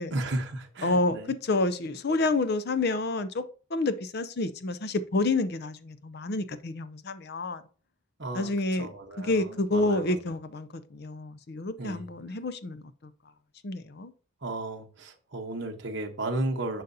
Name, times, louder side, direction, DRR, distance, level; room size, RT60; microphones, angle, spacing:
voice 1, 0.1-1.3 8.2-10.2 11.8-12.1 14.4-16.8, right 2 dB, 55° right, 1.1 m, -34 dB
voice 2, 0.8-3.4 3.7-7.6 8.3-8.9 9.2-12.8 13.6-14.1, left 2 dB, 50° left, 0.5 m, -29 dB
10.5 x 4.0 x 2.7 m
head